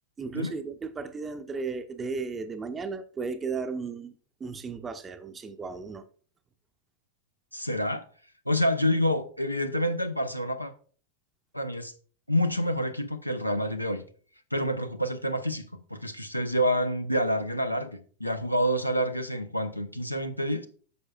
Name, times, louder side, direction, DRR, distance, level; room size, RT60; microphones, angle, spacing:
voice 1, 0.2-4.1 4.4-6.1, right 4 dB, 20° right, 0.6 m, -35 dB
voice 2, 7.5-8.0 8.5-10.7 11.5-11.9 12.3-14.0 14.5-15.6 15.9-20.7, equal, 90° left, 0.7 m, -28 dB
9.5 x 6.6 x 2.3 m
figure-of-eight pair, 90°, 0 cm